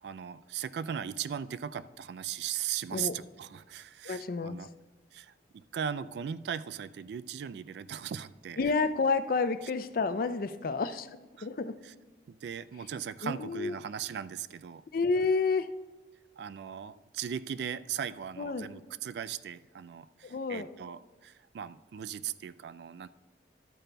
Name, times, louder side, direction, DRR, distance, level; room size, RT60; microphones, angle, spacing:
voice 1, 0.0-4.7 5.1-8.6 11.4-11.5 11.8-11.9 12.3-14.8 16.4-23.1, right 8 dB, 65° right, 14 dB, 0.3 m, -38 dB
voice 2, 4.0-4.7 8.6-11.8 13.2-13.7 14.9-15.7 18.4-18.7 20.2-20.7, left 4 dB, 55° left, 12 dB, 0.4 m, -30 dB
12.0 x 8.9 x 2.2 m, 1.3 s
head